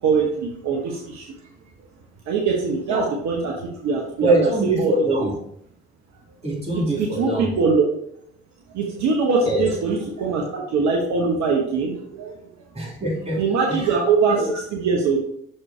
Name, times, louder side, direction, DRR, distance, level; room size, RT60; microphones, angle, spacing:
voice 1, 0.0-1.3 2.3-4.9 5.2-5.3 7.0-7.8 8.7-12.3 13.4-14.4 14.7-15.2, right 4 dB, 60° right, 0 dB, 1.1 m, -22 dB
voice 2, 4.2-5.3 6.4-7.5 9.4-9.7 12.7-14.0 14.3-14.5, right 1 dB, 20° right, -4 dB, 3.0 m, -23 dB
6.3 x 4.7 x 4.4 m, 0.72 s
hypercardioid pair, 50°, 31 cm